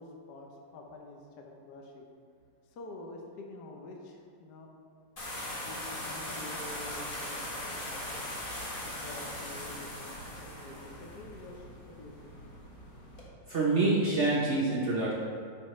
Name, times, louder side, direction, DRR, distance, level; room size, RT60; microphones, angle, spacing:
voice 1, 0.0-2.1 2.7-4.7 5.6-8.2 8.8-12.4, left 2 dB, 60° left, 1 dB, 1.2 m, -48 dB
sound 1, 5.2-13.3, left 1 dB, 30° left, 1.4 m, -40 dB
voice 2, 13.5-15.1, right 2 dB, 65° right, -4 dB, 0.6 m, -26 dB
10.5 x 5.5 x 3.2 m, 2.2 s
omnidirectional pair, 2.3 m